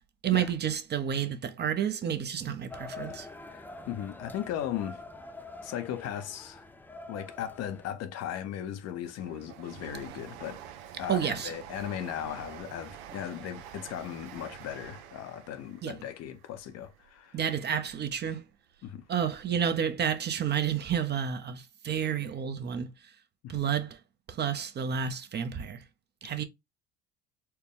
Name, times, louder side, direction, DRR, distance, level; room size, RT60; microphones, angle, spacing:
voice 1, 0.2-3.3 11.1-11.5 15.8-16.0 17.3-18.4 19.1-22.9 23.5-24.0 24.3-25.8 26.2-26.4, right 8 dB, 30° right, 0.7 m, -30 dB
sound 1, 2.7-7.9, left 2 dB, 5° left, 0.4 m, -45 dB
voice 2, 3.5-5.0 5.6-6.6 7.1-10.6 11.0-17.4 18.8-19.1 23.4-23.6, left 10 dB, 50° left, 0.7 m, -37 dB
Train, 8.1-18.3 18.7-19.6 19.9-20.0, right 9 dB, 75° right, 0.8 m, -48 dB
4.4 x 2.2 x 3.4 m
supercardioid pair, 95°, 34 cm